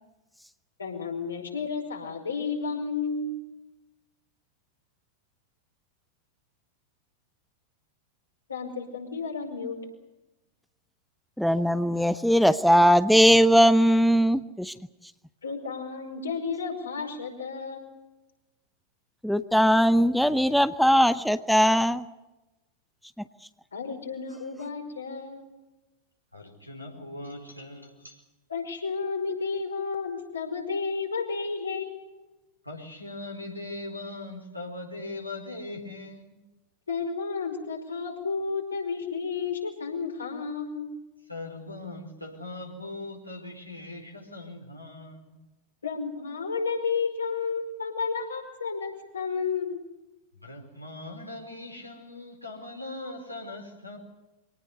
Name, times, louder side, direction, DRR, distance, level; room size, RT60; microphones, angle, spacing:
voice 1, 0.8-3.4 8.5-9.8 15.4-17.9 23.7-25.5 28.5-32.2 36.9-40.9 45.8-49.8, left 5 dB, 75° left, 2 dB, 5.1 m, -32 dB
voice 2, 11.4-14.7 19.2-22.0, equal, ahead, 13 dB, 0.8 m, -20 dB
voice 3, 26.3-28.2 32.6-36.4 41.3-45.4 50.3-54.0, left 2 dB, 90° left, 1 dB, 4.6 m, -40 dB
24.5 x 18.5 x 8.3 m, 1.0 s
figure-of-eight pair, 90°, 0 cm